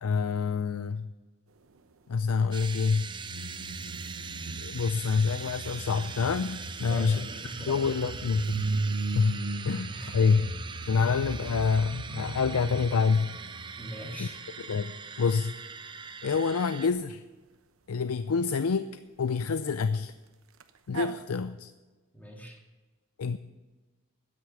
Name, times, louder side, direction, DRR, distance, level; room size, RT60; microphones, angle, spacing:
voice 1, 0.0-1.1 2.1-3.1 4.6-7.3 7.7-8.7 9.1-9.4 9.7-10.5 10.8-13.3 14.2-14.3 14.7-15.5 16.2-17.2 17.9-20.1 20.9-21.7 23.2-23.4, left 5 dB, 90° left, 12 dB, 0.5 m, -27 dB
sound 1, 2.5-16.9, right 5 dB, 20° right, 0.6 m, -42 dB
sound 2, 2.8-14.4 20.6-20.7 20.9-21.1, right 2 dB, 70° right, 0.9 m, -37 dB
voice 2, 6.9-7.9 9.9-10.4 11.0-11.1 13.8-14.4 22.1-22.6, equal, 10° left, 0 dB, 2.6 m, -41 dB
13.0 x 9.7 x 7.1 m, 1.3 s
head